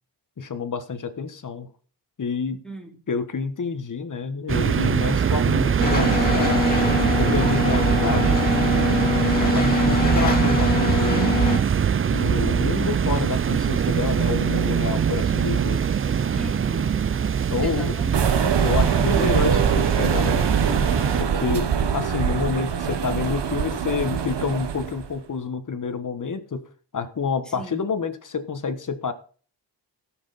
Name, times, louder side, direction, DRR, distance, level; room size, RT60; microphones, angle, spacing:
voice 1, 0.4-1.7 2.2-2.6 3.1-6.8 7.2-9.0 9.4-11.4 12.1-15.8 17.5-18.0 18.6-20.9 21.2-26.6 26.9-29.1, left 5 dB, 45° left, 10 dB, 1.4 m, -28 dB
voice 2, 2.6-3.0 16.4-17.0 17.6-18.5 27.5-27.9, right 1 dB, ahead, 2 dB, 2.7 m, -37 dB
sound 1, 4.5-21.2, right 7 dB, 30° right, 0.4 m, -22 dB
sound 2, 5.8-11.6, left 3 dB, 20° left, 2.9 m, -23 dB
sound 3, 18.1-25.1, right 7 dB, 65° right, 1.3 m, -24 dB
17.5 x 6.1 x 4.1 m, 0.41 s
cardioid pair, 85°, 44 cm